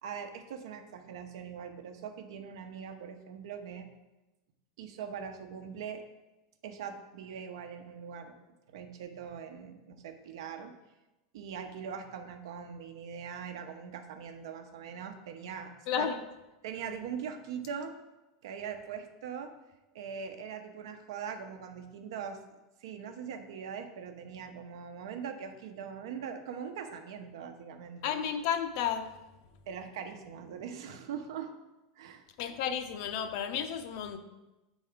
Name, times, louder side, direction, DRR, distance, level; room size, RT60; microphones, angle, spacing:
voice 1, 0.0-3.9 4.8-6.0 6.6-8.3 8.7-10.7 11.3-15.7 16.0-16.1 16.6-17.9 18.4-19.5 19.9-22.4 22.8-28.2 29.7-31.5 32.0-32.3, right 7 dB, 75° right, 6 dB, 0.9 m, -41 dB
voice 2, 28.0-29.1 32.4-34.2, left 8 dB, 55° left, 8 dB, 0.7 m, -32 dB
6.8 x 4.1 x 5.0 m, 1.0 s
supercardioid pair, 150°, 2 cm